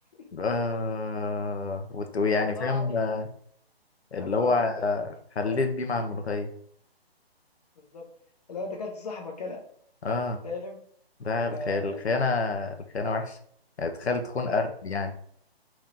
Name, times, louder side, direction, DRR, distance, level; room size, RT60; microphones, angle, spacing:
voice 1, 0.3-3.3 4.1-6.5 10.0-10.4 11.2-13.4 13.8-15.1, left 3 dB, 85° left, 5 dB, 0.6 m, -28 dB
voice 2, 2.3-3.0 4.2-4.9 5.4-5.6 6.0-6.3 7.8-8.1 8.5-9.6 10.4-10.8 11.5-12.1 14.4-14.6, left 2 dB, 40° left, 2 dB, 0.7 m, -37 dB
3.6 x 2.7 x 2.7 m, 0.63 s
figure-of-eight pair, 145°, 31 cm